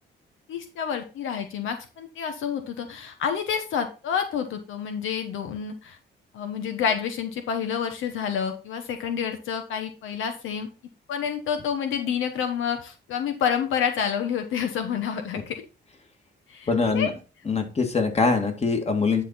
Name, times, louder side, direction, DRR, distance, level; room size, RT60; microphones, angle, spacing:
voice 1, 0.5-6.0 6.3-10.7 11.1-15.5 16.5-16.7 16.9-17.1, left 7 dB, 80° left, 7 dB, 1.2 m, -28 dB
voice 2, 16.7-17.1 17.5-19.2, left 4 dB, 30° left, 5 dB, 2.1 m, -23 dB
10.0 x 4.3 x 4.0 m, 0.33 s
cardioid pair, 90°, 20 cm